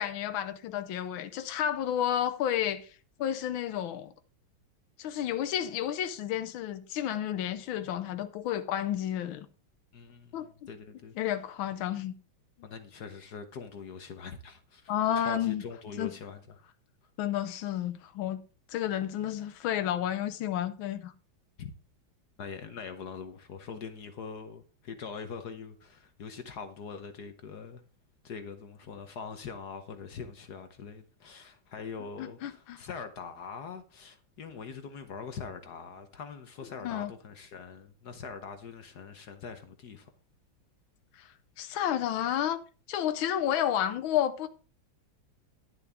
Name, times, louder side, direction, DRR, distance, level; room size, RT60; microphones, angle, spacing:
voice 1, 0.0-2.9 3.2-4.1 5.0-9.5 10.3-10.5 11.2-12.1 14.9-15.6 16.0-16.1 17.2-18.4 18.7-21.1 32.4-32.8 36.8-37.1 41.2-41.3 41.6-42.6 42.9-44.5, left 10 dB, 80° left, 1.6 m, -31 dB
voice 2, 9.9-11.1 12.6-16.4 21.6-21.7 22.4-27.8 28.2-40.1, left 6 dB, 55° left, 1.4 m, -43 dB
10.5 x 9.8 x 3.5 m
omnidirectional pair, 2.2 m